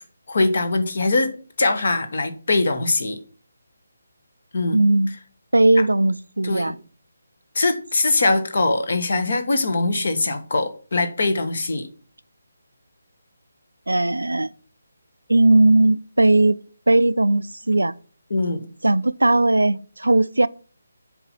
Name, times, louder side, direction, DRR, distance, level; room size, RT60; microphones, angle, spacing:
voice 1, 0.3-1.3 1.6-3.2 4.5-4.8 6.4-6.7 7.5-11.9 18.3-18.7, left 2 dB, 50° left, 1.3 m, -22 dB
voice 2, 4.7-5.2 5.5-6.7 13.9-14.5 15.3-16.6 16.9-17.9 18.8-20.5, right 2 dB, 75° right, 0.4 m, -18 dB
7.6 x 4.7 x 5.9 m
figure-of-eight pair, 150°, 0 cm